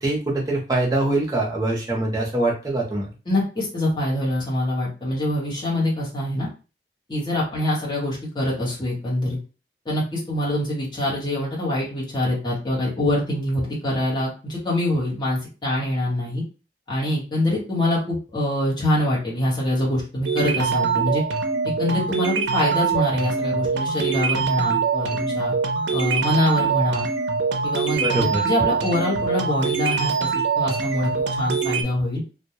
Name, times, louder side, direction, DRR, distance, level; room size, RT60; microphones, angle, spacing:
voice 1, 0.0-3.1 28.0-28.4, right 2 dB, 20° right, -2 dB, 0.6 m, -23 dB
voice 2, 3.3-6.5 7.1-9.4 9.8-16.4 16.9-21.2 21.6-25.5 25.9-27.1 27.6-30.3 30.5-32.2, left 1 dB, 25° left, -5 dB, 0.9 m, -24 dB
sound 1, 20.2-31.8, right 5 dB, 80° right, 0.4 m, -24 dB
2.2 x 2.1 x 2.7 m, 0.33 s
head